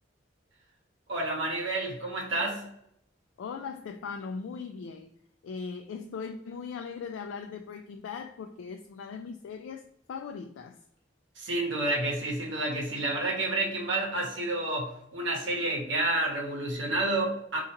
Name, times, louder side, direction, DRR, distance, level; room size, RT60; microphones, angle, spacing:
voice 1, 1.1-2.7 11.4-17.6, right 2 dB, 70° right, -1 dB, 0.9 m, -30 dB
voice 2, 3.4-5.1 5.4-10.8, left 5 dB, 80° left, 6 dB, 0.3 m, -39 dB
4.4 x 2.4 x 2.9 m, 0.73 s
head